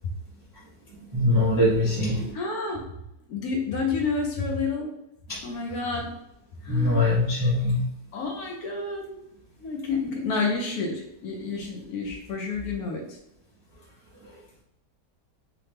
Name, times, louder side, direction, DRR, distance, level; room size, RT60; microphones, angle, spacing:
voice 1, 1.1-2.3 5.3-5.5 6.7-7.8 14.2-14.3, left 1 dB, 35° right, -8 dB, 0.3 m, -23 dB
voice 2, 2.3-2.9 3.3-4.9 5.4-6.1 6.6-7.1 8.1-9.2 9.6-13.2, left 4 dB, 70° left, 1 dB, 1.0 m, -29 dB
3.2 x 2.0 x 3.2 m, 0.82 s
omnidirectional pair, 1.8 m